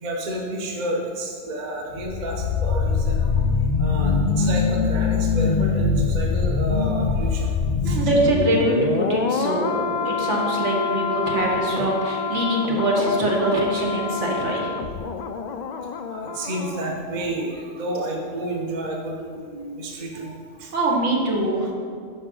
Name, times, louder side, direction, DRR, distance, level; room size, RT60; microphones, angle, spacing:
voice 1, 0.0-3.4 3.8-7.5 7.8-8.1 11.1-11.2 15.1-15.2 16.1-20.7 21.5-21.6, right 1 dB, 40° right, 0 dB, 0.9 m, -30 dB
sound 1, 1.9-16.9 17.2-17.3, left 5 dB, 75° left, 0.4 m, -24 dB
voice 2, 7.8-14.7 20.7-21.7, right 1 dB, 70° right, -2 dB, 1.7 m, -23 dB
9.7 x 5.7 x 3.8 m, 2.2 s
omnidirectional pair, 1.3 m